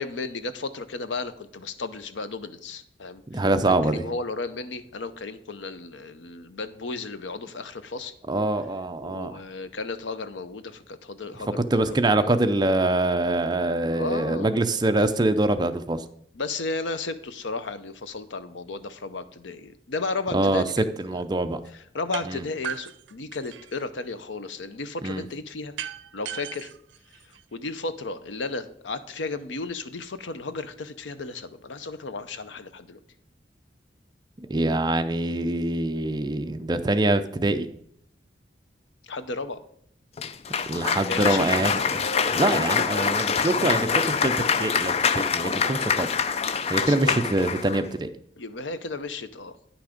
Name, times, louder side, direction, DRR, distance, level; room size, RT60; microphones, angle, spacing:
voice 1, 0.0-8.1 9.0-12.3 13.9-14.6 15.0-15.1 16.3-20.7 21.1-21.2 21.9-25.7 26.1-26.7 27.5-33.0 39.1-39.6 41.1-41.8 46.8-47.2 48.4-49.6, left 3 dB, 85° left, 12 dB, 0.7 m, -34 dB
voice 2, 3.3-4.1 8.3-9.3 11.7-16.0 20.3-21.6 22.2-22.5 25.0-25.3 34.5-37.7 40.7-42.0 42.3-44.3 44.6-46.1 46.7-48.1, right 2 dB, 25° right, 9 dB, 0.5 m, -24 dB
sound 1, 22.1-22.3 22.6-23.8 25.8-27.8, right 9 dB, 85° right, 0.5 m, -37 dB
Cheering / Applause, 40.2-47.9, left 6 dB, 35° left, 0.4 m, -25 dB
9.6 x 6.0 x 5.0 m, 0.69 s
head